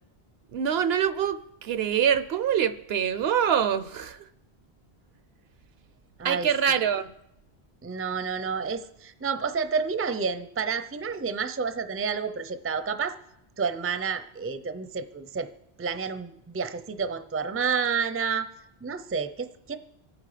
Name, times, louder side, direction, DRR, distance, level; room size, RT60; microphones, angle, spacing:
voice 1, 0.5-4.3 6.2-7.1, right 8 dB, 75° right, 0.9 m, -25 dB
voice 2, 7.8-13.2 13.6-15.5 15.8-18.5 18.8-19.8, right 5 dB, 15° right, 0.5 m, -30 dB
25.5 x 9.3 x 5.0 m
omnidirectional pair, 1.1 m